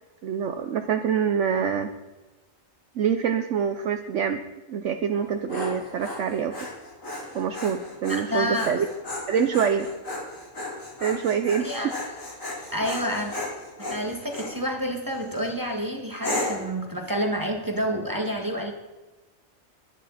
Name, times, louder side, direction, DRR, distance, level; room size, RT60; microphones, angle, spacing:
voice 1, 0.2-1.9 3.0-4.4 4.7-6.6 7.3-8.9 9.3-9.9 11.0-11.7, right 7 dB, 70° right, 8 dB, 1.1 m, -25 dB
Dog, 5.1-14.6 15.1-15.5 16.2-16.7, left 2 dB, 80° left, 4.6 m, -35 dB
voice 2, 8.1-8.8 11.6-12.0 12.7-13.3 13.9-18.7, equal, 15° right, 2 dB, 2.0 m, -29 dB
21.5 x 10.5 x 4.2 m, 1.2 s
omnidirectional pair, 1.4 m